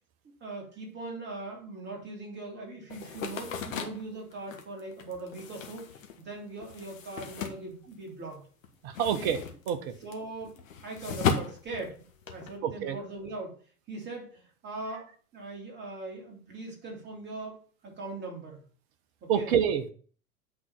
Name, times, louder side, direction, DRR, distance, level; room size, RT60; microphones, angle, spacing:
voice 1, 0.4-8.4 9.2-9.3 10.0-10.5 10.8-13.5 13.9-17.6 17.8-18.6 19.2-19.5, right 2 dB, 25° right, -1 dB, 3.0 m, -40 dB
sound 1, 2.9-8.3 8.6-12.5, left 6 dB, 60° left, 1.4 m, -36 dB
voice 2, 8.8-9.9 12.6-13.0 19.3-19.9, right 8 dB, 40° right, 11 dB, 1.1 m, -28 dB
8.6 x 4.2 x 5.4 m, 0.43 s
figure-of-eight pair, 90°, 45 cm